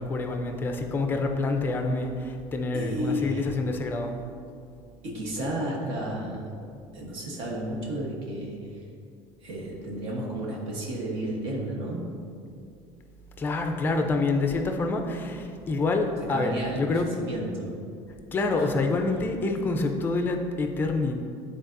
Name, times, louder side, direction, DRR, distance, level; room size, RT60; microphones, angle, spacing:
voice 1, 0.0-4.2 13.4-17.1 18.3-21.1, left 3 dB, 20° left, 4 dB, 0.5 m, -27 dB
voice 2, 2.7-3.5 5.0-6.5 6.9-8.8 9.4-12.2 16.2-17.8 18.6-18.9, equal, 50° right, -2 dB, 1.1 m, -32 dB
11.5 x 4.1 x 2.6 m, 2.4 s
cardioid pair, 175°, 11 cm